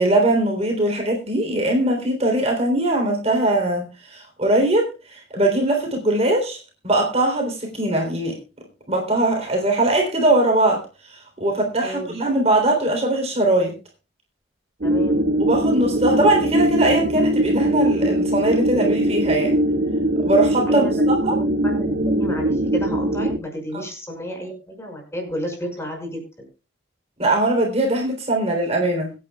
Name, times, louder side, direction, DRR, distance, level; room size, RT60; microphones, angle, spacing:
voice 1, 0.0-8.4 8.9-13.8 15.4-19.6 20.2-20.9 21.2-21.4 27.2-29.1, right 1 dB, 35° right, 1 dB, 3.5 m, -21 dB
voice 2, 11.8-12.1 14.8-15.2 20.7-20.9 21.2-26.5, equal, 15° left, 2 dB, 5.6 m, -32 dB
sound 1, 14.8-23.4, right 1 dB, 70° right, 2.0 m, -21 dB
24.5 x 9.3 x 2.3 m, 0.29 s
head